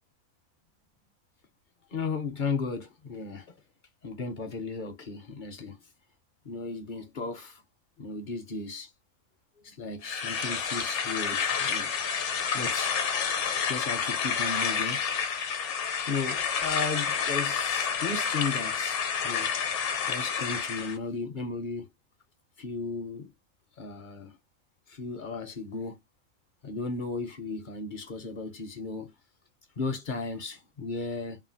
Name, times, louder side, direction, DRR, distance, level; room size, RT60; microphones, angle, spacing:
voice 1, 1.9-3.5 4.0-5.8 6.5-7.6 8.0-8.9 9.6-11.9 12.5-12.9 13.7-15.0 16.1-19.5 20.1-21.9 22.6-23.3 23.8-24.3 24.9-26.0 26.6-29.1 29.8-31.4, left 4 dB, 50° left, 0.7 m, -35 dB
sound 1, 10.0-21.0, left 6 dB, 70° left, 1.0 m, -29 dB
3.1 x 2.3 x 2.5 m
omnidirectional pair, 1.3 m